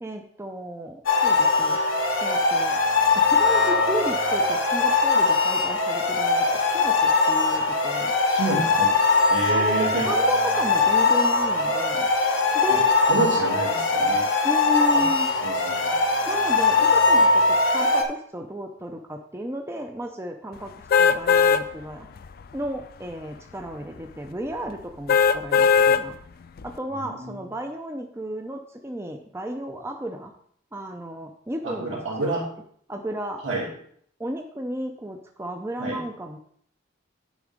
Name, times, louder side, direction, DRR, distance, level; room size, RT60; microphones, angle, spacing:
voice 1, 0.0-1.8 2.2-2.8 3.1-8.1 9.5-12.1 12.5-12.9 14.4-15.6 16.3-20.7 21.0-22.1 22.5-26.2 26.6-30.3 30.7-32.4 32.9-33.4 34.2-36.4, right 1 dB, 10° right, 4 dB, 0.5 m, -33 dB
sound 1, 1.1-18.0, left 3 dB, 70° left, 1.1 m, -21 dB
voice 2, 8.3-8.9 9.3-10.1 12.7-12.8 13.1-14.3 14.9-15.0 15.4-16.0 26.9-27.4 31.6-32.5 33.4-33.7 35.8-36.0, right 2 dB, 80° right, -4 dB, 2.9 m, -28 dB
sound 2, 20.9-21.6 22.2-22.3 25.1-26.0 26.6-26.7, left 6 dB, 45° left, 0.3 m, -18 dB
9.4 x 3.8 x 5.1 m, 0.62 s
head